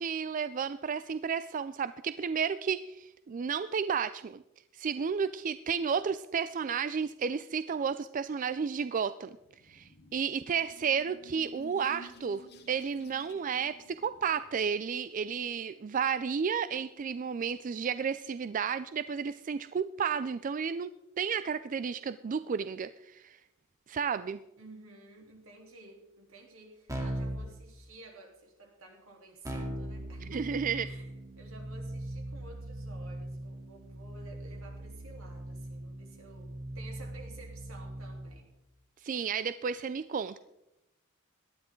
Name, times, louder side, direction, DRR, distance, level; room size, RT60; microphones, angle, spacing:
voice 1, 0.0-4.4 4.7-9.4 9.6-23.4 23.9-24.4 30.3-30.9 39.0-40.4, right 6 dB, 40° right, 13 dB, 0.4 m, -32 dB
sound 1, 9.3-14.7, equal, 50° left, 1.5 m, -54 dB
voice 2, 24.6-31.1 31.4-38.5, right 2 dB, 80° right, 1 dB, 3.5 m, -52 dB
Keyboard (musical), 26.9-27.5 29.4-38.3, right 1 dB, 15° right, 2.5 m, -40 dB
18.0 x 12.0 x 3.8 m, 0.89 s
head